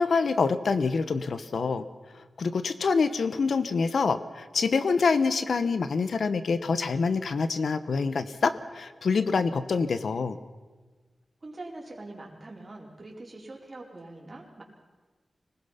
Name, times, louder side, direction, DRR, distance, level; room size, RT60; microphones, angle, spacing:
voice 1, 0.0-1.9 2.1-10.4, left 4 dB, 80° left, 11 dB, 1.0 m, -26 dB
voice 2, 11.4-14.6, right 2 dB, 35° right, -2 dB, 4.5 m, -43 dB
25.5 x 19.5 x 5.8 m, 1.3 s
wide cardioid pair, 120°, 0 cm